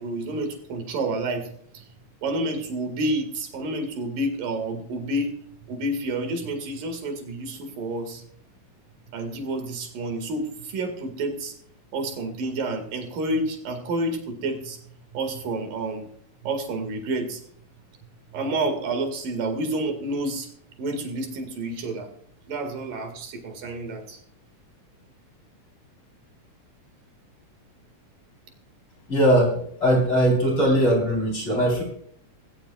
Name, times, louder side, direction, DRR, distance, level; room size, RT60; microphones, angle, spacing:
voice 1, 0.0-1.8 2.2-5.3 5.7-8.3 9.1-11.5 11.9-14.8 15.1-16.1 16.4-17.4 18.3-20.5 20.8-22.1 22.5-24.2, right 2 dB, 80° right, 5 dB, 3.8 m, -29 dB
voice 2, 29.1-29.5 29.8-31.8, equal, 35° left, 0 dB, 5.0 m, -20 dB
17.5 x 17.5 x 2.4 m, 0.62 s
omnidirectional pair, 3.8 m